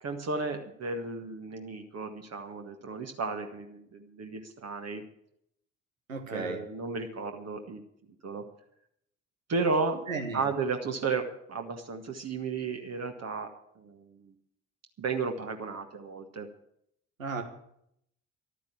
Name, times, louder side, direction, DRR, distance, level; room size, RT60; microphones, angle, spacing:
voice 1, 0.0-5.0 6.3-7.8 8.2-8.4 9.5-10.1 10.3-13.5 13.8-14.3 15.0-16.5, right 4 dB, 40° right, 5 dB, 1.8 m, -33 dB
voice 2, 6.1-6.6 10.1-10.4 17.2-17.4, right 4 dB, 85° right, 6 dB, 1.4 m, -34 dB
12.5 x 9.5 x 8.5 m, 0.73 s
figure-of-eight pair, 45°, 39 cm